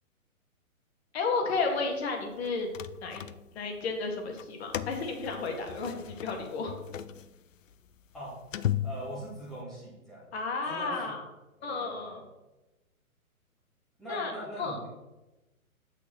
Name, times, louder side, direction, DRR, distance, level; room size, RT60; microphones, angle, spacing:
voice 1, 1.1-2.7 3.0-3.2 3.5-6.7 10.3-11.2 11.6-12.2 14.1-14.3 14.6-14.8, left 4 dB, 45° left, 3 dB, 2.1 m, -32 dB
sound 1, 2.4-3.8 4.3-9.6, left 11 dB, 65° left, 0.6 m, -37 dB
voice 2, 8.8-10.2 10.7-11.0 11.6-12.2 14.0-14.9, equal, ahead, -9 dB, 0.4 m, -41 dB
8.2 x 6.4 x 4.4 m, 1.0 s
hypercardioid pair, 135°, 43 cm